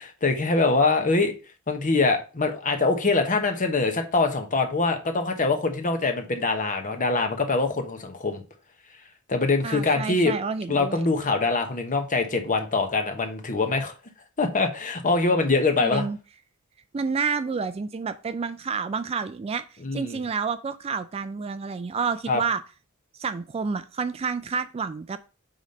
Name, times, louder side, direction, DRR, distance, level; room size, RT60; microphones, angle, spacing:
voice 1, 0.0-1.3 1.7-8.4 9.3-10.3 10.7-13.9 14.4-16.1 19.8-20.2 22.3-22.4, left 3 dB, 35° left, 1.0 m, -24 dB
voice 2, 9.6-11.0 15.8-16.2 16.9-19.6 19.9-22.6 23.2-25.2, right 5 dB, 25° right, 0.3 m, -29 dB
5.0 x 4.0 x 5.3 m
head